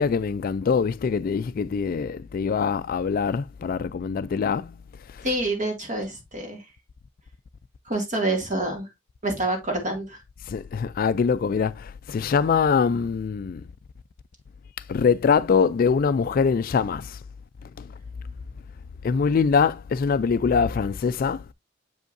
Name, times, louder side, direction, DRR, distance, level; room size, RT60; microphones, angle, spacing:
voice 1, 0.0-4.8 5.1-5.3 10.5-13.7 14.9-17.2 17.6-17.9 19.0-21.5, left 5 dB, 45° left, 0.3 m, -23 dB
voice 2, 5.2-6.7 7.9-8.9 9.2-10.2, right 2 dB, 40° right, 2.2 m, -27 dB
7.2 x 5.3 x 2.6 m
head